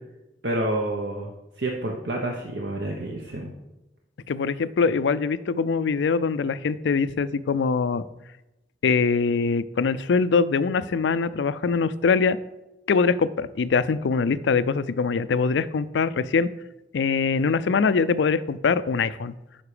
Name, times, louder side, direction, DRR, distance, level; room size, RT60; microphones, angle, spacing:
voice 1, 0.4-1.3 1.6-3.5, right 1 dB, 70° right, 0 dB, 1.0 m, -28 dB
voice 2, 4.3-8.0 8.8-12.4 12.9-16.5 16.9-19.3, left 5 dB, 80° left, 16 dB, 0.4 m, -23 dB
9.5 x 5.9 x 5.0 m, 0.97 s
head